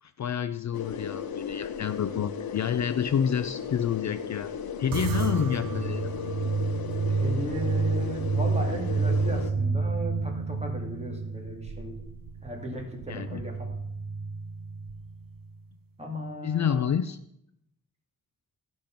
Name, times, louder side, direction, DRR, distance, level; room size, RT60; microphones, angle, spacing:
voice 1, 0.0-4.5 4.8-6.1 13.1-13.4 16.4-17.2, left 8 dB, 50° left, 13 dB, 0.4 m, -28 dB
sound 1, 0.7-9.5, left 7 dB, 80° left, 0.8 m, -36 dB
sound 2, 4.9-15.5, right 4 dB, 70° right, 0.6 m, -30 dB
voice 2, 7.1-12.0 12.4-13.8 16.0-16.9, equal, 20° right, 1 dB, 2.2 m, -36 dB
12.0 x 5.3 x 5.8 m, 0.76 s
wide cardioid pair, 120°, 36 cm